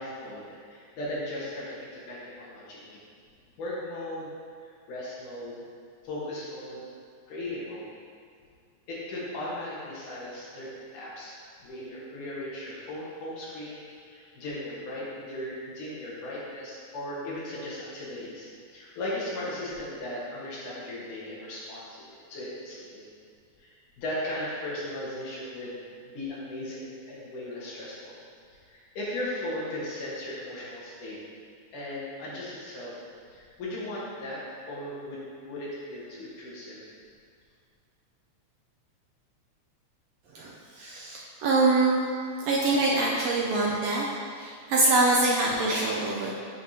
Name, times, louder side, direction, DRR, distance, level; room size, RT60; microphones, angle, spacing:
voice 1, 0.0-3.0 3.6-4.3 4.6-5.6 6.0-6.9 7.3-7.8 8.9-22.0 22.3-23.0 23.6-25.7 26.1-28.2 28.5-31.2 31.7-32.9 33.3-34.4 34.7-36.8, left 1 dB, 85° left, -7 dB, 3.0 m, -37 dB
voice 2, 40.3-42.1 42.4-44.1 44.4-46.3, right 2 dB, 75° right, -4 dB, 1.5 m, -24 dB
8.9 x 5.3 x 2.8 m, 2.2 s
omnidirectional pair, 3.5 m